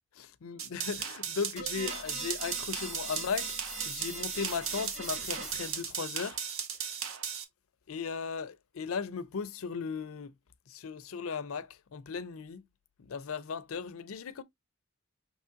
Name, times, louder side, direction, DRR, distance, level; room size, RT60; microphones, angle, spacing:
voice 1, 0.2-6.4 6.8-6.9 7.9-10.3 10.7-12.6 13.0-14.4, left 5 dB, 80° left, 0.5 m, -37 dB
sound 1, 0.6-7.4, right 7 dB, 70° right, 0.8 m, -37 dB
sound 2, 1.6-6.0, right 2 dB, 35° right, 2.4 m, -41 dB
5.5 x 3.0 x 2.5 m
head